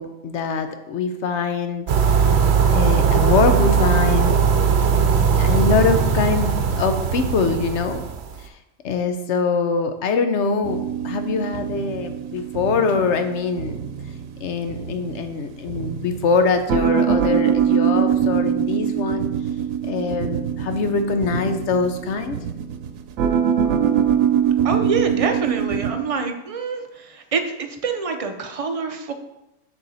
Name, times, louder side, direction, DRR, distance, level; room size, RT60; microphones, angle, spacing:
voice 1, 0.0-2.3 2.7-4.4 5.4-8.0 8.4-8.5 8.8-13.8 14.4-19.3 19.9-22.4, left 4 dB, 65° left, 7 dB, 1.0 m, -23 dB
sound 1, 1.9-8.3, right 6 dB, 60° right, 0.9 m, -19 dB
sound 2, 10.6-25.9, right 8 dB, 85° right, 1.0 m, -23 dB
voice 2, 24.6-29.1, right 4 dB, 40° right, 5 dB, 0.5 m, -26 dB
6.7 x 6.1 x 4.2 m, 0.90 s
omnidirectional pair, 1.4 m